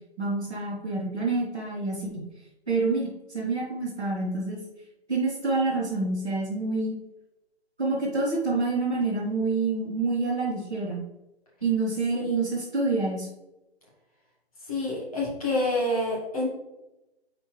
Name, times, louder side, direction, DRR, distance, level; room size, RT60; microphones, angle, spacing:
voice 1, 0.2-2.2 2.7-4.6 5.1-7.0 7.8-11.0 11.6-13.3, right 3 dB, 5° right, -19 dB, 0.7 m, -27 dB
voice 2, 14.7-16.5, left 1 dB, 35° left, -5 dB, 2.1 m, -27 dB
8.5 x 4.3 x 3.2 m, 0.96 s
hypercardioid pair, 175°, 32 cm